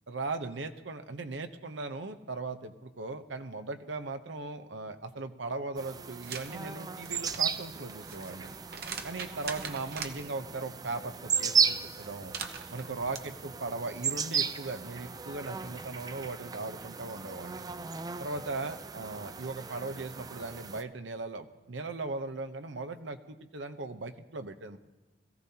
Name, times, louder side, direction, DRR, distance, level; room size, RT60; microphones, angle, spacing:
voice 1, 0.1-8.5 9.0-12.4 12.7-17.6 18.2-24.8, right 3 dB, 85° right, 8 dB, 0.9 m, -38 dB
sound 1, 5.8-20.8, right 6 dB, 20° right, 0.4 m, -35 dB
sound 2, 6.2-6.5 6.9-10.2 12.0-13.2, right 6 dB, 55° right, 0.9 m, -41 dB
21.5 x 15.0 x 2.9 m, 1.2 s
head